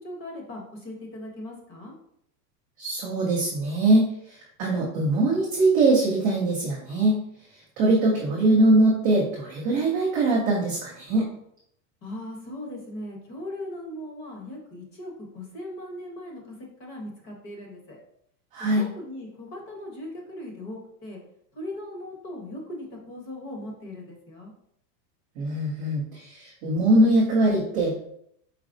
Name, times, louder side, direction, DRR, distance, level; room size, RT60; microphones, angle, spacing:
voice 1, 0.0-2.0 12.0-18.0 18.8-21.2 21.5-24.5, left 1 dB, 25° left, 0 dB, 0.9 m, -39 dB
voice 2, 2.8-7.2 7.8-11.3 18.5-18.9 25.4-28.0, right 2 dB, 20° right, -8 dB, 0.3 m, -22 dB
4.8 x 4.0 x 2.5 m, 0.72 s
supercardioid pair, 160°, 50 cm